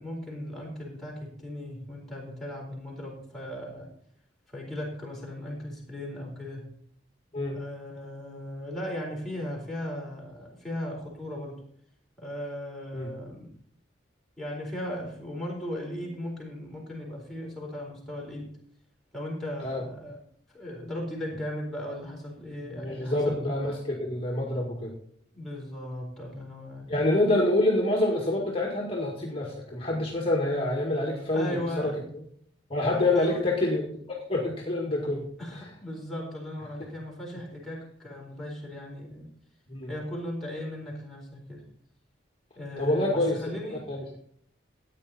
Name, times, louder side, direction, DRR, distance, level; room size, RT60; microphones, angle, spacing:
voice 1, 0.0-3.9 4.5-6.7 7.5-11.6 12.2-13.5 14.4-18.6 19.1-20.2 20.5-23.8 25.3-27.0 31.3-32.0 33.1-33.4 35.4-39.3 39.9-41.6 42.5-43.9, left 1 dB, ahead, -4 dB, 4.2 m, -37 dB
voice 2, 22.7-24.9 26.9-31.9 32.7-33.8 34.3-35.2 39.7-39.9 42.8-43.4 43.9-44.2, left 2 dB, 30° left, -2 dB, 1.9 m, -26 dB
14.0 x 9.3 x 4.2 m, 0.66 s
head